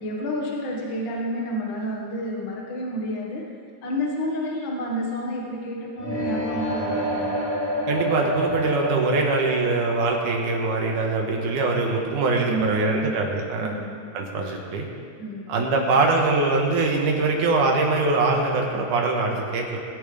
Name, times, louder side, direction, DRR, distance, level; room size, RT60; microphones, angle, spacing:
voice 1, 0.0-3.5 3.8-7.5 12.5-13.1 13.6-14.0 15.2-15.6, equal, 45° left, -2 dB, 2.2 m, -30 dB
sound 1, 6.0-11.9, equal, 20° right, 3.8 m, -29 dB
voice 2, 7.9-13.7 14.1-14.9 15.5-19.8, right 3 dB, 90° right, 1 dB, 3.1 m, -23 dB
22.0 x 11.0 x 3.5 m, 2.2 s
omnidirectional pair, 3.5 m